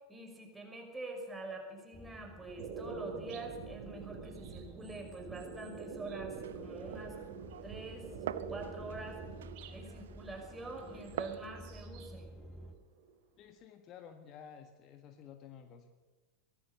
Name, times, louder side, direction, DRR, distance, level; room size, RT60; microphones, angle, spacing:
voice 1, 0.1-7.2 7.6-9.2 9.7-12.3, right 2 dB, 10° right, 1 dB, 5.7 m, -45 dB
sound 1, 1.9-12.7, equal, 10° left, 1.3 m, -52 dB
sound 2, 2.6-9.8 10.8-12.1 12.4-13.4, right 5 dB, 45° right, 3.4 m, -46 dB
Glass, 6.3-11.5, right 10 dB, 60° right, 0.7 m, -46 dB
voice 2, 13.4-15.9, left 8 dB, 35° left, 7 dB, 1.5 m, -52 dB
23.5 x 16.5 x 6.9 m, 1.3 s
figure-of-eight pair, 90°, 0 cm